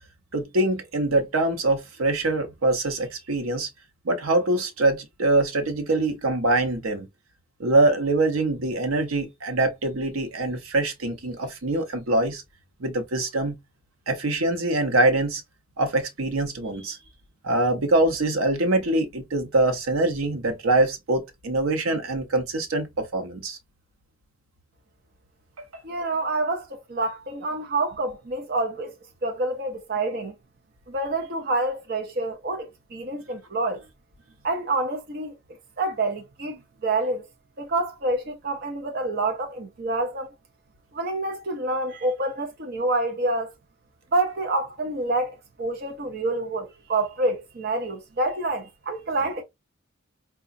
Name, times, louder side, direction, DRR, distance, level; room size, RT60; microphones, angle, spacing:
voice 1, 0.3-3.7 4.0-7.1 7.6-12.4 12.8-13.5 14.1-15.4 15.8-17.0 17.4-23.6, right 2 dB, 85° right, 0.8 m, -24 dB
voice 2, 25.8-28.9 29.2-30.3 30.9-33.8 34.4-35.4 35.8-37.3 37.6-40.3 40.9-43.5 44.1-49.4, right 2 dB, 50° right, 0.6 m, -27 dB
4.8 x 2.3 x 2.5 m
head